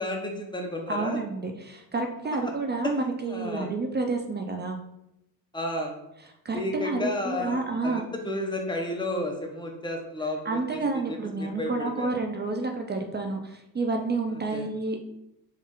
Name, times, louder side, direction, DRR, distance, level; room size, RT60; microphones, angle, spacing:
voice 1, 0.0-1.2 2.4-2.5 2.8-2.9 3.3-3.7 5.5-6.0 6.5-12.1 14.3-14.7, left 1 dB, 10° left, 1 dB, 0.8 m, -32 dB
voice 2, 0.9-4.8 6.4-8.1 10.5-15.0, right 3 dB, 25° right, 4 dB, 0.4 m, -29 dB
4.1 x 2.5 x 3.6 m, 0.85 s
cardioid pair, 100°, 40 cm